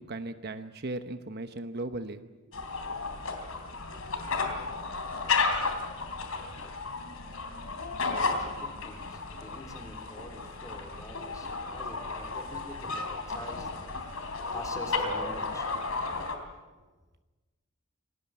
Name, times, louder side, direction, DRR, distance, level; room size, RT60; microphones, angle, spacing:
voice 1, 0.0-2.6 16.8-16.9, right 2 dB, 50° right, 9 dB, 1.0 m, -38 dB
sound 1, 2.5-16.4, left 4 dB, 75° left, 3.4 m, -33 dB
voice 2, 8.3-15.8, left 1 dB, 15° left, 3 dB, 3.4 m, -46 dB
26.5 x 19.0 x 8.7 m, 1.3 s
head